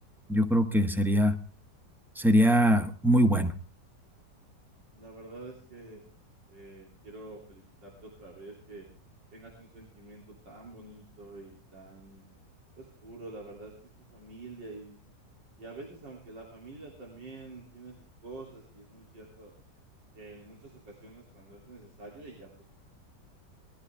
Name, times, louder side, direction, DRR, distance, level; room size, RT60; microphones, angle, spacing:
voice 1, 0.3-1.3 2.2-3.5, equal, ahead, 7 dB, 0.8 m, -22 dB
voice 2, 4.9-6.1 6.5-8.9 9.3-12.2 12.8-13.7 14.1-15.0 15.6-18.0 18.2-19.5 20.1-22.5, right 2 dB, 80° right, -2 dB, 3.8 m, -47 dB
20.5 x 13.0 x 3.5 m, 0.36 s
omnidirectional pair, 1.9 m